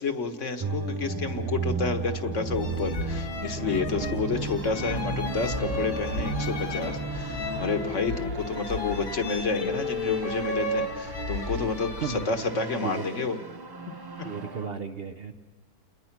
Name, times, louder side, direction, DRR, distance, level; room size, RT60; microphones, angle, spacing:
voice 1, 0.0-13.4 13.9-14.3, left 4 dB, 55° left, 8 dB, 1.5 m, -30 dB
sound 1, 0.6-14.7, right 4 dB, 25° right, 0.5 m, -35 dB
sound 2, 2.5-12.2, left 2 dB, 75° left, 2.0 m, -33 dB
voice 2, 3.6-4.5 11.9-12.5 12.8-13.3 14.2-15.3, right 6 dB, 45° right, 7 dB, 1.0 m, -36 dB
29.0 x 20.5 x 6.0 m, 1.3 s
omnidirectional pair, 1.6 m